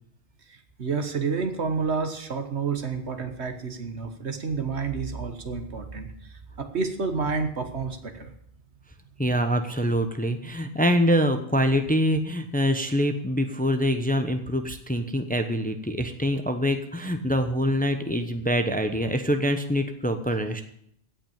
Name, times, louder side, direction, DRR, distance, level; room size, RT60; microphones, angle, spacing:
voice 1, 0.5-8.3, right 5 dB, 65° right, 7 dB, 1.8 m, -30 dB
voice 2, 9.2-20.6, equal, 10° left, 7 dB, 0.9 m, -25 dB
16.5 x 6.0 x 8.9 m, 0.68 s
omnidirectional pair, 1.2 m